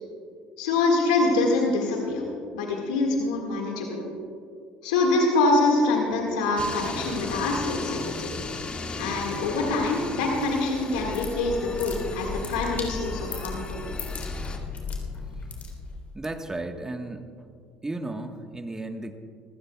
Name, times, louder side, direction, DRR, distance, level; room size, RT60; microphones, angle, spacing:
voice 1, 0.6-2.3 2.5-4.0 4.8-8.3 9.0-13.8, left 3 dB, 85° left, 0 dB, 1.9 m, -25 dB
sound 1, 6.6-14.6, left 3 dB, 30° left, 2.0 m, -36 dB
sound 2, 10.7-16.1, left 4 dB, 45° left, 3.6 m, -36 dB
voice 2, 16.1-17.3 17.8-19.1, right 2 dB, 15° right, 5 dB, 1.4 m, -34 dB
25.0 x 15.5 x 2.4 m, 2.3 s
hypercardioid pair, 75°, 4 cm